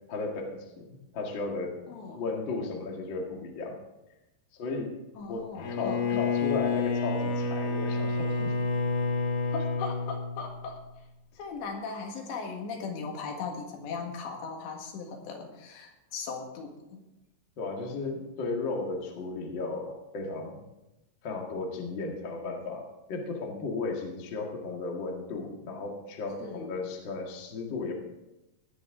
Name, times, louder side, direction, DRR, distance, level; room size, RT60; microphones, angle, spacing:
voice 1, 0.1-0.8 1.1-1.8 2.1-3.8 4.5-4.9 5.3-8.5 17.6-20.6 21.2-27.9, left 3 dB, 45° left, 0 dB, 1.6 m, -35 dB
voice 2, 1.9-2.2 5.2-6.2 9.5-10.8 11.4-17.0 26.4-26.7, left 4 dB, 80° left, 2 dB, 4.0 m, -38 dB
Bowed string instrument, 5.6-10.9, left 3 dB, 60° left, 2.3 m, -29 dB
16.5 x 10.5 x 3.7 m, 0.97 s
omnidirectional pair, 5.0 m